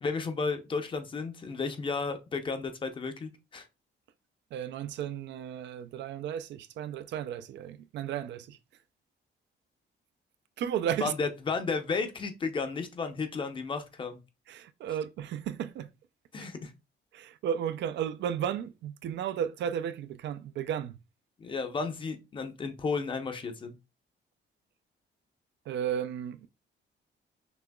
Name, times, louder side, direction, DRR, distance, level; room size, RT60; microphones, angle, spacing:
voice 1, 0.0-3.7 11.0-14.2 16.3-16.7 21.4-23.8, left 4 dB, 25° left, 0.6 m, -33 dB
voice 2, 4.5-8.6 10.6-11.1 14.5-15.9 17.1-21.0 25.7-26.5, right 9 dB, 70° right, 0.4 m, -34 dB
6.0 x 2.9 x 2.2 m
cardioid pair, 180°, 19 cm